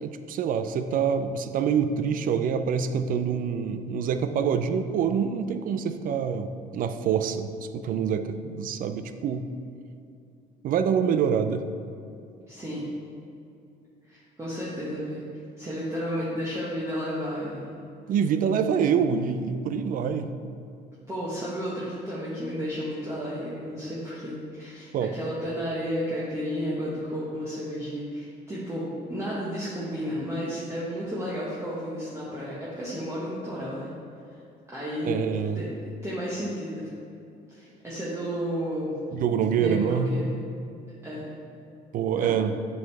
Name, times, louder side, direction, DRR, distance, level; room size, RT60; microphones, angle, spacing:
voice 1, 0.0-9.5 10.6-11.6 18.1-20.3 24.9-25.1 35.0-35.6 39.1-40.1 41.9-42.5, right 7 dB, 55° right, 10 dB, 0.4 m, -26 dB
voice 2, 12.5-12.9 14.1-15.3 15.6-17.8 21.1-33.9 34.7-35.1 35.5-35.7 36.0-36.9 37.5-38.9 39.6-40.3 41.0-41.3 42.2-42.3, equal, 15° right, -8 dB, 1.3 m, -32 dB
7.7 x 5.3 x 3.3 m, 2.6 s
cardioid pair, 110°, 17 cm